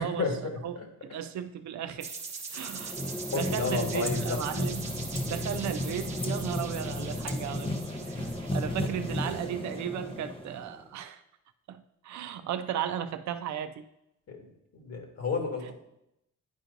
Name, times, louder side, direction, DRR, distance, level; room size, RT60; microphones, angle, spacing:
voice 1, 0.0-0.8 3.3-4.4 14.3-15.7, left 4 dB, 55° left, 1 dB, 1.7 m, -32 dB
voice 2, 1.0-2.2 2.5-3.0 3.3-4.8 5.2-8.2 8.5-11.2 11.7-13.8, right 9 dB, 65° right, 10 dB, 0.5 m, -35 dB
sound 1, 2.0-9.8, right 4 dB, 25° right, 1.1 m, -42 dB
sound 2, 2.6-10.9, left 1 dB, 20° left, 0.7 m, -34 dB
10.5 x 4.5 x 2.6 m, 0.84 s
cardioid pair, 90°, 30 cm